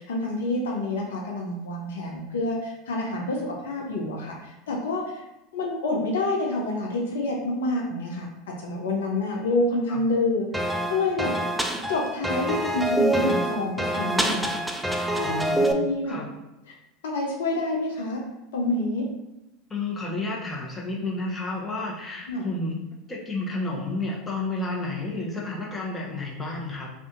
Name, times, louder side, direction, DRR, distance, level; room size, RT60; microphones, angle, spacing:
voice 1, 0.0-5.0 5.5-8.3 8.6-11.3 11.9-16.2 17.0-18.2 18.5-19.1 22.3-22.5, left 2 dB, 75° left, -1 dB, 0.5 m, -28 dB
sound 1, 10.5-15.7, right 1 dB, 5° right, 0.3 m, -26 dB
voice 2, 15.2-16.3 19.7-22.7 23.1-26.9, left 2 dB, 15° left, -3 dB, 0.8 m, -31 dB
2.6 x 2.4 x 3.6 m, 0.93 s
hypercardioid pair, 80°, 0 cm